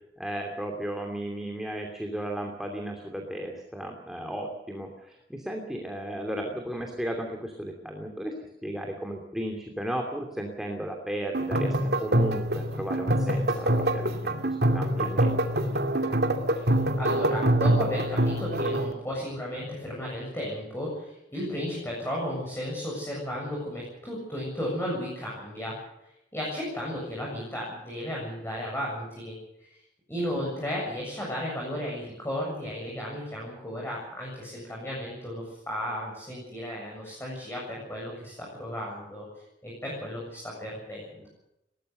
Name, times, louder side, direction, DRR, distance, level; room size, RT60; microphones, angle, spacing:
voice 1, 0.2-15.7 16.0-16.2 41.2-41.3, right 1 dB, 5° right, 2 dB, 2.8 m, -35 dB
sound 1, 11.3-18.9, right 1 dB, 65° right, 2.5 m, -25 dB
voice 2, 17.0-25.8 26.3-29.7 30.1-39.3 39.6-41.3, equal, 15° left, -3 dB, 7.6 m, -34 dB
22.0 x 19.0 x 6.7 m, 0.84 s
head